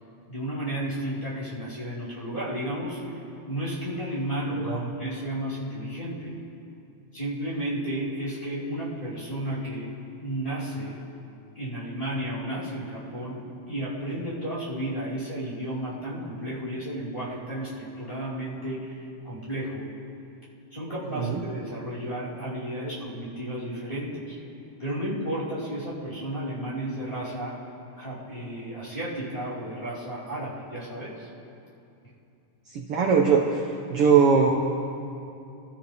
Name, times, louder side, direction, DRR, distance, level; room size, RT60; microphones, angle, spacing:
voice 1, 0.3-6.3 7.1-9.9 10.2-11.0 11.5-13.4 13.7-19.9 20.7-24.4 24.8-27.6 28.0-31.3, right 1 dB, 10° left, -11 dB, 4.7 m, -33 dB
voice 2, 32.7-33.6 33.9-34.5, right 6 dB, 60° right, 1 dB, 1.7 m, -20 dB
26.5 x 13.5 x 3.6 m, 2.7 s
omnidirectional pair, 3.3 m